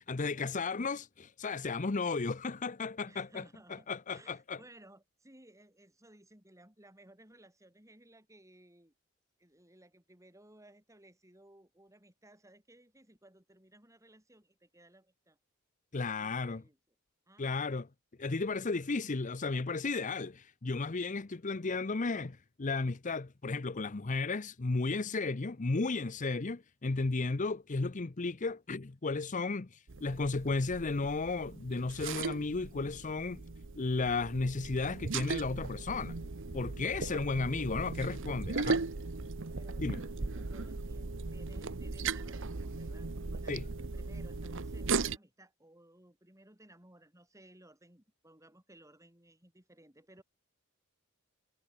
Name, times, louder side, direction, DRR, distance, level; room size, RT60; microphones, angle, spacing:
voice 1, 0.0-3.4 3.7-4.6 15.9-16.6 17.4-17.9 18.2-33.4 33.8-36.2 36.5-38.8 39.8-40.0 43.5-43.6, left 3 dB, 35° left, 0.7 m, -34 dB
voice 2, 3.1-8.9 9.4-15.4 16.0-16.8 17.3-17.5 36.8-37.3 39.5-43.6 43.9-50.2, right 1 dB, 15° right, 7.9 m, -59 dB
sound 1, 29.9-45.2, right 4 dB, 60° right, 1.0 m, -38 dB
head